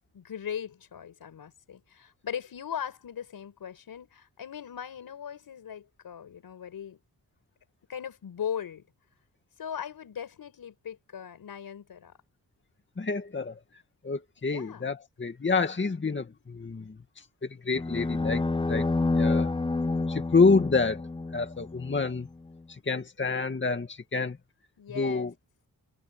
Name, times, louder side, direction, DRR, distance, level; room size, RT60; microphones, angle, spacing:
voice 1, 0.1-7.0 7.9-8.9 9.6-12.2 14.4-14.9 24.8-25.3, left 8 dB, 80° left, 5.5 m, -39 dB
voice 2, 13.0-13.6 14.0-16.9 17.4-18.9 19.1-19.5 20.1-21.0 21.3-22.3 22.7-24.4 24.9-25.3, left 4 dB, 30° left, 2.2 m, -27 dB
sound 1, 17.7-22.0, left 3 dB, 15° left, 0.6 m, -28 dB
cardioid pair, 80°, 35 cm